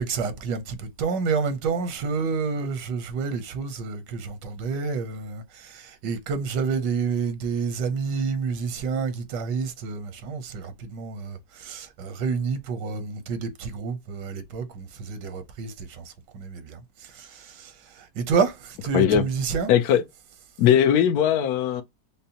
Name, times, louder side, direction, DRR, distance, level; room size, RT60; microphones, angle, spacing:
voice 1, 0.0-19.7, right 5 dB, 90° right, 1.4 m, -29 dB
voice 2, 19.7-20.0 20.6-21.8, left 9 dB, 70° left, 1.0 m, -19 dB
5.3 x 2.1 x 2.7 m
omnidirectional pair, 1.8 m